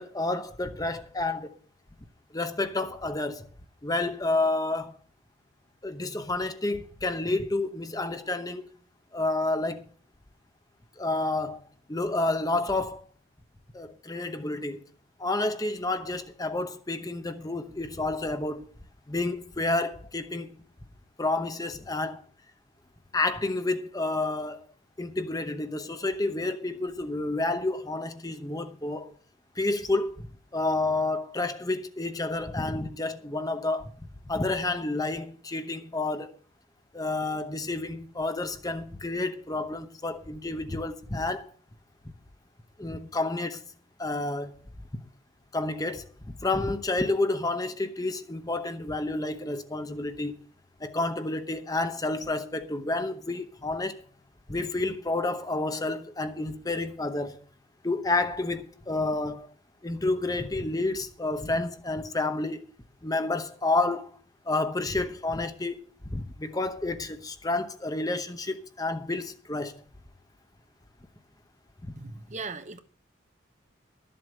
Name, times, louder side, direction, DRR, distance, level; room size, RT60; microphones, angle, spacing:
voice 1, 0.0-1.5 2.3-3.5 3.8-5.0 5.8-8.7 9.1-9.8 11.0-11.6 11.9-13.0 13.7-14.8 15.2-18.6 19.1-20.6 21.2-22.2 23.1-24.6 25.0-29.1 29.6-30.1 30.5-33.9 34.3-36.3 36.9-41.5 42.8-43.6 44.0-44.5 45.5-50.4 50.8-54.0 54.5-57.3 57.8-59.5 59.8-62.6 63.0-64.1 64.5-65.8 66.1-69.7 71.8-71.9, left 2 dB, 20° left, 0.8 m, -30 dB
voice 2, 72.0-72.8, right 3 dB, 35° right, 1.0 m, -38 dB
13.0 x 7.8 x 6.4 m
head